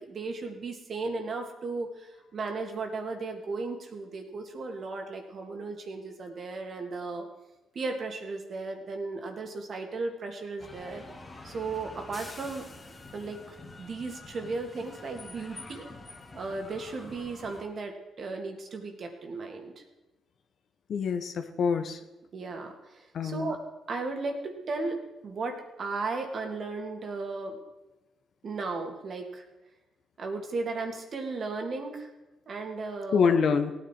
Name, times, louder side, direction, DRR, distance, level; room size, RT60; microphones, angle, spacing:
voice 1, 0.0-7.2 7.7-11.0 11.4-12.7 13.1-15.9 16.3-19.7 22.3-27.6 28.4-29.4 30.2-32.1 32.5-33.4, right 3 dB, 50° right, 3 dB, 2.3 m, -35 dB
sound 1, 10.6-17.6, left 2 dB, 25° left, 2.3 m, -47 dB
voice 2, 20.9-22.0 23.1-23.5 33.1-33.7, left 6 dB, 60° left, 8 dB, 1.2 m, -26 dB
17.0 x 9.6 x 4.5 m, 1.0 s
cardioid pair, 90°, 0 cm